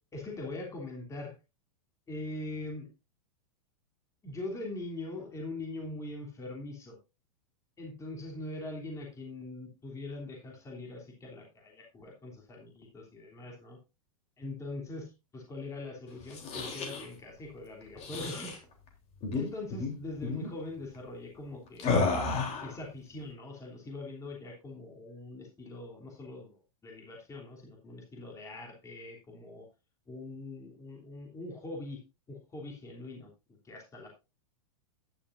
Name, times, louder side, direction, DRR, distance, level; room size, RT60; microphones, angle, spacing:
voice 1, 0.1-1.3 2.1-2.9 4.2-7.0 7.8-13.8 14.4-18.6 19.3-22.0 22.6-29.7 30.1-32.0 32.3-33.3 33.6-34.2, left 2 dB, 15° left, 0 dB, 3.1 m, -42 dB
sound 1, 16.2-17.1 18.0-18.6 19.2-19.4 19.7-19.9 20.2-20.5 21.8-22.7, left 4 dB, 35° left, 3.5 m, -31 dB
11.5 x 10.5 x 2.6 m, 0.28 s
hypercardioid pair, 125°, 18 cm